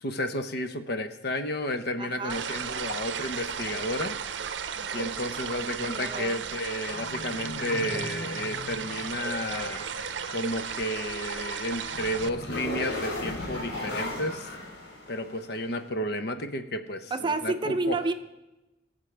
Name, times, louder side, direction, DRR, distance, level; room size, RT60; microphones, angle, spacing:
voice 1, 0.0-4.2 4.9-9.9 10.3-14.5 15.1-18.0, left 1 dB, 65° left, 8 dB, 0.8 m, -32 dB
voice 2, 2.0-2.4 4.8-6.4 17.1-18.1, right 3 dB, 25° right, 8 dB, 0.6 m, -31 dB
sound 1, 2.3-12.3, right 7 dB, 90° right, 0.6 m, -35 dB
sound 2, 6.9-15.6, left 2 dB, 90° left, 3.4 m, -38 dB
22.0 x 7.5 x 3.4 m, 1.0 s
head